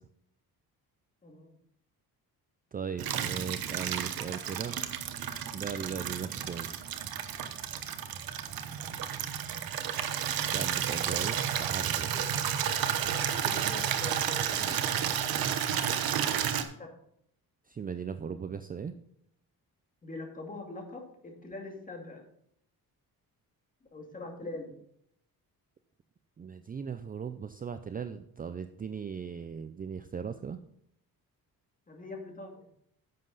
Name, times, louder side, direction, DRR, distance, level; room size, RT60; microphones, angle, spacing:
voice 1, 1.2-1.6 9.0-9.3 12.1-12.3 13.1-15.9 16.5-16.9 20.0-22.3 23.9-24.7 31.9-32.6, left 2 dB, 20° left, 1 dB, 2.4 m, -44 dB
voice 2, 2.7-4.8 5.5-6.7 10.5-12.1 17.7-18.9 26.4-30.6, right 6 dB, 25° right, 10 dB, 0.4 m, -38 dB
Water tap faucet / Liquid, 3.0-16.6, right 9 dB, 70° right, 1.1 m, -32 dB
10.5 x 7.6 x 4.0 m, 0.71 s
cardioid pair, 150°, 37 cm